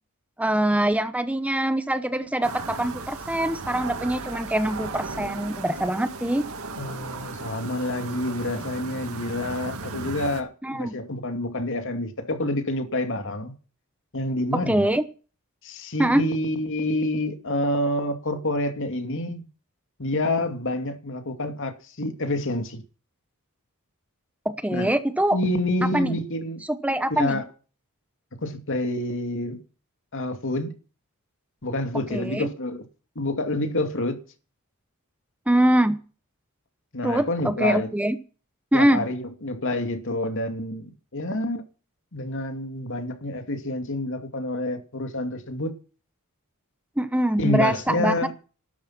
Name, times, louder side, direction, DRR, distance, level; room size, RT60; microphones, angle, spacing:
voice 1, 0.4-6.4 10.6-10.9 14.5-15.0 16.0-16.2 24.4-25.4 25.9-26.2 26.7-27.4 32.1-32.5 35.5-36.0 37.0-38.2 38.7-39.0 47.0-48.1, right 1 dB, 5° right, 0.9 m, -23 dB
sound 1, 2.4-10.4, right 3 dB, 70° right, 2.1 m, -36 dB
voice 2, 6.8-13.5 14.1-14.9 15.6-19.4 20.0-22.8 24.7-24.9 25.3-26.6 27.1-27.4 28.4-29.6 30.1-30.7 31.6-32.8 33.2-34.2 36.9-37.9 38.7-41.6 42.1-45.7 47.4-48.3, left 1 dB, 60° left, 2.5 m, -28 dB
14.0 x 12.5 x 6.0 m
head